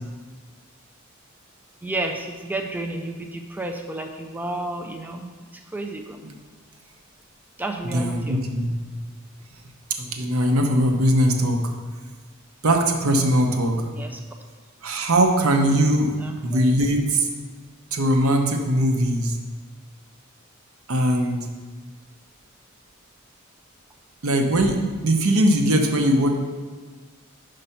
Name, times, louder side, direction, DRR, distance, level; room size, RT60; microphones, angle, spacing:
voice 1, 1.8-6.2 7.6-8.4 13.8-14.2 16.2-16.8, right 2 dB, 10° right, 3 dB, 0.4 m, -32 dB
voice 2, 7.9-8.7 10.1-11.7 12.6-13.9 14.8-17.3 17.9-19.4 20.9-21.5 24.2-24.8 25.0-26.3, right 1 dB, 85° right, 4 dB, 0.8 m, -20 dB
5.5 x 5.2 x 5.6 m, 1.4 s
head